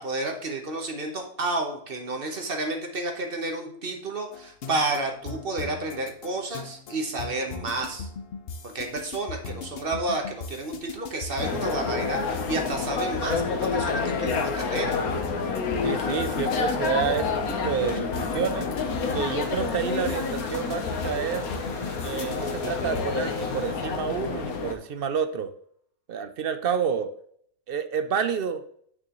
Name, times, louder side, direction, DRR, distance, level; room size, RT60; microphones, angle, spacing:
voice 1, 0.0-8.1 8.6-14.9, right 2 dB, 40° right, 3 dB, 1.3 m, -31 dB
sound 1, 4.3-23.2, left 4 dB, 55° left, 0.8 m, -39 dB
sound 2, 11.4-24.7, left 5 dB, 85° left, 1.4 m, -29 dB
voice 2, 15.8-18.7 19.1-21.4 22.0-25.5 26.1-27.1 27.7-28.6, right 7 dB, 60° right, 10 dB, 0.6 m, -29 dB
sound 3, 18.9-25.0, left 1 dB, 35° left, 1.3 m, -46 dB
9.1 x 6.0 x 3.0 m, 0.64 s
omnidirectional pair, 1.5 m